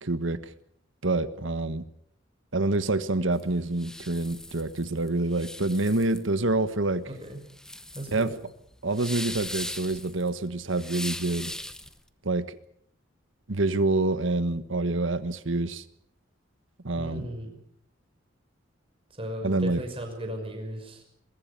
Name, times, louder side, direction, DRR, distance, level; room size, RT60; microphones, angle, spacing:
voice 1, 0.0-0.4 1.0-1.9 2.5-7.1 8.1-8.3 8.8-11.5 12.2-12.6 13.5-15.8 16.8-17.2 19.4-19.8, right 2 dB, 70° right, 13 dB, 1.4 m, -27 dB
sound 1, 3.3-12.0, left 1 dB, 5° left, 0.9 m, -39 dB
voice 2, 7.1-7.4 7.9-8.3 17.0-17.5 19.1-21.0, equal, 30° right, 5 dB, 5.9 m, -36 dB
22.5 x 22.5 x 6.9 m, 0.71 s
head